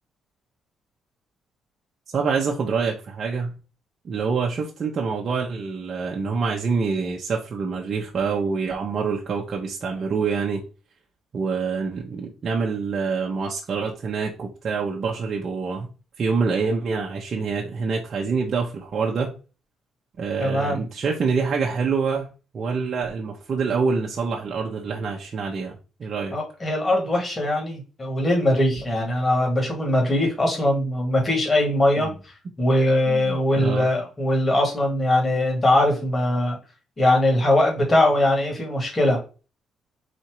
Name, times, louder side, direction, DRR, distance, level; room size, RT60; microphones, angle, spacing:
voice 1, 2.1-3.5 4.0-10.6 11.3-15.9 16.2-19.3 20.2-22.3 22.5-25.7 26.0-26.4 32.0-32.1 33.1-33.9, right 5 dB, 50° right, -1 dB, 0.9 m, -26 dB
voice 2, 20.4-20.8 26.3-32.1 32.6-36.6 37.0-39.2, left 1 dB, 25° left, 0 dB, 1.9 m, -21 dB
4.2 x 2.7 x 4.6 m, 0.33 s
cardioid pair, 90°, 0 cm